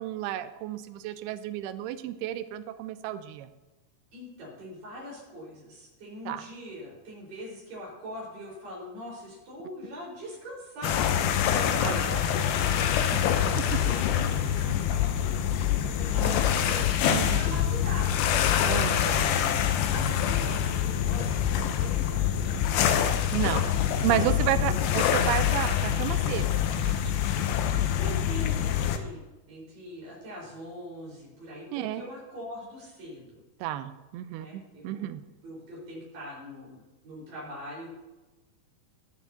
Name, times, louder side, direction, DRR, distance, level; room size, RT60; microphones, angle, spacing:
voice 1, 0.0-3.5 6.3-6.4 11.8-12.2 16.2-16.4 17.1-17.4 18.6-19.3 23.3-23.6 24.0-27.0 31.7-32.0 33.6-35.2, right 13 dB, 85° right, 10 dB, 2.4 m, -32 dB
voice 2, 4.1-11.2 11.5-18.2 19.2-23.1 23.4-24.9 28.0-33.4 34.4-35.1 35.4-37.9, equal, 50° right, -5 dB, 6.0 m, -42 dB
sound 1, 10.8-29.0, left 9 dB, 80° left, 2.3 m, -25 dB
21.0 x 7.3 x 2.8 m, 1.1 s
omnidirectional pair, 4.9 m